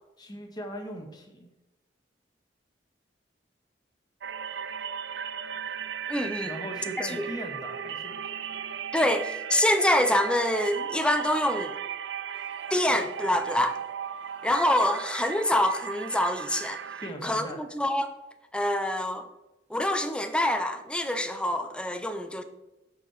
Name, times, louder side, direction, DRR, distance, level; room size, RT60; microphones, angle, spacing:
voice 1, 0.2-1.5 6.4-8.2 17.0-17.6, equal, 25° left, 2 dB, 1.5 m, -39 dB
sound 1, 4.2-17.1, right 7 dB, 70° right, 0.4 m, -36 dB
voice 2, 6.1-6.5 7.0-7.3 8.9-11.8 12.7-13.8 14.4-16.8 17.2-18.1 18.5-19.3 19.7-22.4, left 1 dB, 5° left, 8 dB, 0.6 m, -26 dB
6.7 x 6.3 x 5.7 m, 0.97 s
head